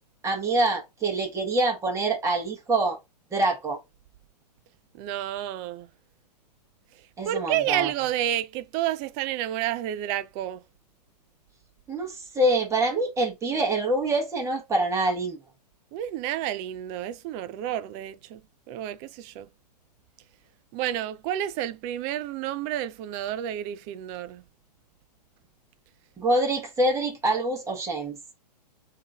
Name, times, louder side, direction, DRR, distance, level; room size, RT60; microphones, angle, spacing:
voice 1, 0.2-3.0 3.3-3.8 7.2-7.9 11.9-15.4 26.2-28.2, right 2 dB, 15° right, 1.3 m, -25 dB
voice 2, 4.9-5.9 7.2-10.6 15.9-18.4 18.7-19.5 20.7-24.4, right 12 dB, 30° right, 0.4 m, -30 dB
3.6 x 2.8 x 3.5 m
hypercardioid pair, 125°, 21 cm